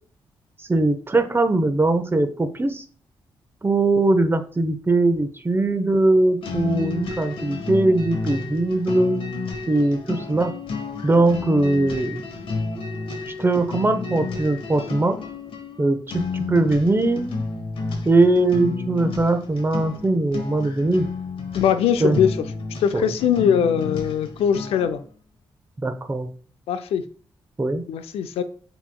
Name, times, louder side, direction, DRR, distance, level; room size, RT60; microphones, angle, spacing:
voice 1, 0.7-2.8 3.6-9.2 9.7-10.5 11.0-12.2 13.3-15.2 15.8-17.4 18.1-21.1 22.0-22.2 22.9-23.1 25.8-26.3 27.6-27.8, right 2 dB, 25° right, 8 dB, 0.8 m, -20 dB
sound 1, 6.4-25.0, left 4 dB, 65° left, 1.0 m, -31 dB
voice 2, 21.5-22.4 22.8-25.0 26.7-27.0 27.9-28.4, left 8 dB, 85° left, 10 dB, 0.4 m, -21 dB
7.3 x 3.0 x 2.3 m, 0.43 s
supercardioid pair, 55°, 10 cm